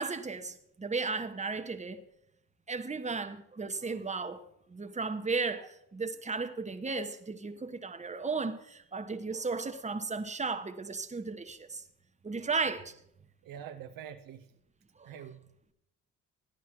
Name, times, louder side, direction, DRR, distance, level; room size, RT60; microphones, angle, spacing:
voice 1, 0.0-2.0 2.7-4.4 4.7-11.8 12.2-12.9 15.0-15.2, right 4 dB, 20° right, 1.0 m, -35 dB
voice 2, 13.4-14.5 15.0-15.5, right 9 dB, 60° right, 0.7 m, -45 dB
15.0 x 10.5 x 3.0 m
hypercardioid pair, 45°, 39 cm